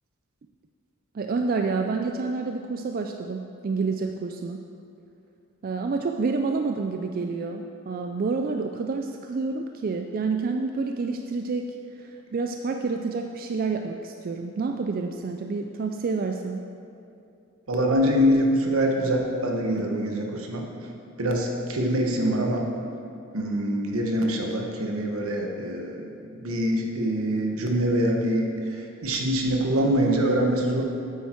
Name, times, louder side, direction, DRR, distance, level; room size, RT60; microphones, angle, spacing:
voice 1, 1.1-4.6 5.6-16.6, right 4 dB, 40° right, 4 dB, 0.3 m, -28 dB
voice 2, 17.7-20.6 21.2-22.7 23.3-26.1 26.4-30.8, equal, 80° right, 1 dB, 1.2 m, -24 dB
8.7 x 8.3 x 4.5 m, 2.7 s
head